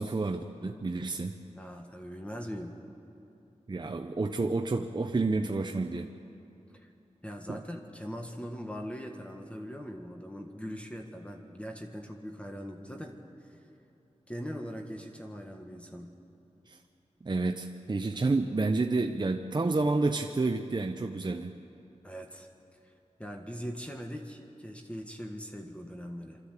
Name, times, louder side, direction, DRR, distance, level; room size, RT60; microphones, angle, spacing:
voice 1, 0.0-1.3 3.7-6.1 7.5-7.6 16.7-16.8 17.2-21.5, right 3 dB, 35° right, 5 dB, 0.7 m, -29 dB
voice 2, 1.5-2.8 6.7-6.9 7.2-13.2 13.5-13.6 14.3-16.1 22.0-22.5 22.8-22.9 23.2-26.4, equal, 10° left, 3 dB, 1.6 m, -41 dB
25.0 x 13.0 x 8.3 m, 2.8 s
wide cardioid pair, 80°, 12 cm